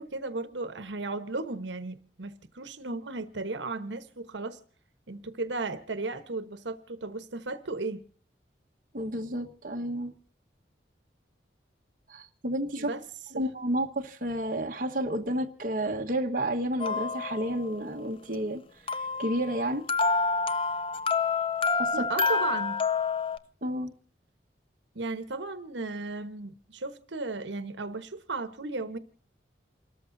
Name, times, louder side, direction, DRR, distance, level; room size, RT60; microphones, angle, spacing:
voice 1, 0.0-4.6 5.1-8.0 12.8-13.0 13.3-13.4 21.9-22.8 24.9-29.0, right 3 dB, 90° right, 1.1 m, -35 dB
voice 2, 8.9-10.1 12.1-12.9 13.4-18.6 19.2-19.8 21.8-22.1 23.6-23.9, right 1 dB, 50° right, 1.4 m, -31 dB
sound 1, 16.8-17.7 18.9-23.4, left 4 dB, 30° left, 0.6 m, -28 dB
29.0 x 14.0 x 2.7 m
head